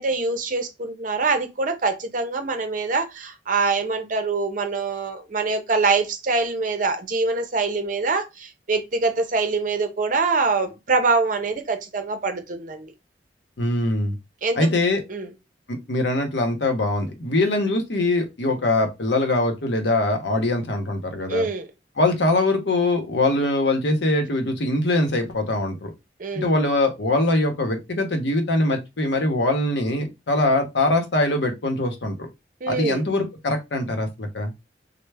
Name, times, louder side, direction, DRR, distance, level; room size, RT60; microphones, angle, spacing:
voice 1, 0.0-12.9 14.4-14.7 15.1-15.3 21.3-21.7 26.2-26.5 32.6-33.1, right 3 dB, 45° right, 0.6 m, -24 dB
voice 2, 13.6-14.2 14.5-15.0 15.7-21.5 22.0-25.9 26.3-32.3 32.7-34.5, left 2 dB, 70° left, 0.8 m, -22 dB
3.3 x 2.1 x 3.3 m
head